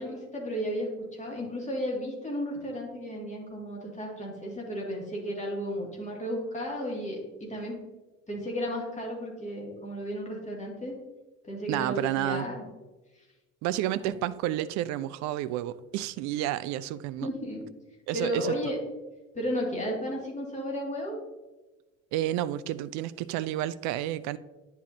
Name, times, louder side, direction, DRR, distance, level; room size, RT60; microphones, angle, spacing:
voice 1, 0.0-7.8 8.3-10.9 11.4-12.6 13.2-13.3 14.0-14.1 17.2-17.6 18.1-18.8 19.3-21.2, equal, 20° left, 2.1 m, -34 dB
voice 2, 11.7-12.5 13.6-17.3 18.1-18.5 22.1-24.4, right 13 dB, 45° right, 0.4 m, -30 dB
10.0 x 4.4 x 2.7 m
figure-of-eight pair, 55°, 39 cm